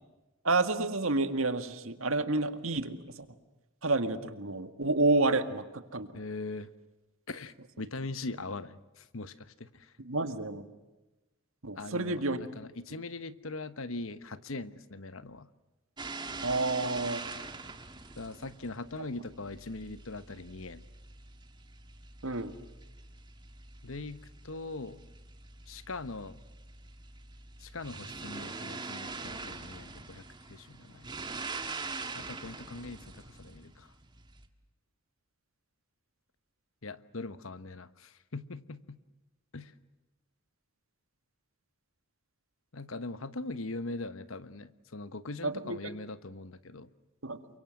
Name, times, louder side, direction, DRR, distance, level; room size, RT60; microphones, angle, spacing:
voice 1, 0.4-3.3 3.8-6.1 10.0-10.7 11.6-12.4 16.4-17.2 22.2-22.5 45.4-45.8 47.2-47.4, right 2 dB, 75° right, 9 dB, 1.9 m, -29 dB
voice 2, 6.1-6.7 7.3-9.9 11.8-12.2 12.5-15.5 18.2-20.8 23.8-24.2 24.4-25.0 25.7-26.4 27.6-31.1 32.1-33.9 36.8-39.0 39.5-39.7 42.7-46.9, left 2 dB, 70° left, 13 dB, 1.2 m, -41 dB
sound 1, 16.0-34.5, right 3 dB, 20° right, 1.7 m, -44 dB
28.5 x 24.0 x 7.8 m, 1.1 s
head